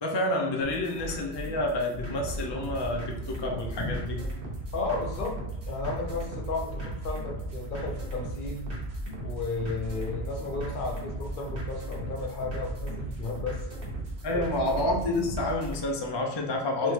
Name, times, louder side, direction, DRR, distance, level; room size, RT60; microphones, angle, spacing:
voice 1, 0.0-4.3 14.2-16.9, left 1 dB, 35° left, 0 dB, 0.4 m, -29 dB
sound 1, 0.6-15.9, equal, 55° right, 1.4 m, -40 dB
sound 2, 2.1-15.7, right 2 dB, 75° right, 1.0 m, -38 dB
voice 2, 4.7-5.4 5.7-8.6 9.2-13.6 14.3-14.8 16.8-16.9, left 3 dB, 55° left, 1 dB, 0.8 m, -34 dB
3.7 x 3.2 x 3.2 m, 0.92 s
omnidirectional pair, 1.1 m